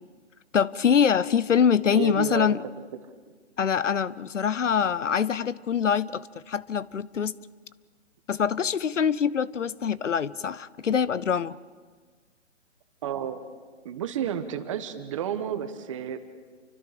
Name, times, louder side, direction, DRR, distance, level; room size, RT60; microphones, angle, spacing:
voice 1, 0.5-2.6 3.6-7.4 8.3-11.6, left 7 dB, 75° left, 19 dB, 0.9 m, -24 dB
voice 2, 1.9-2.5 13.0-13.4 13.8-16.2, right 9 dB, 25° right, 9 dB, 1.3 m, -31 dB
29.5 x 25.0 x 5.1 m, 1.5 s
hypercardioid pair, 155°, 37 cm